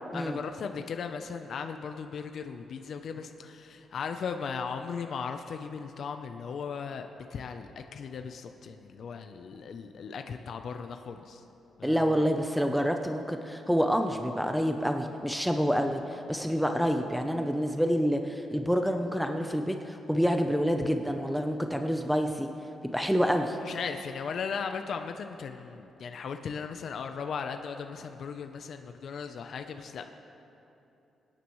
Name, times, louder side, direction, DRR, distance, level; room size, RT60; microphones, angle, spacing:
voice 1, 0.1-11.4 11.8-12.3 23.6-30.1, left 6 dB, 65° left, 6 dB, 0.6 m, -37 dB
voice 2, 11.8-22.5 22.9-23.6, equal, ahead, 4 dB, 0.7 m, -27 dB
24.0 x 10.0 x 3.1 m, 2.9 s
cardioid pair, 105°, 0 cm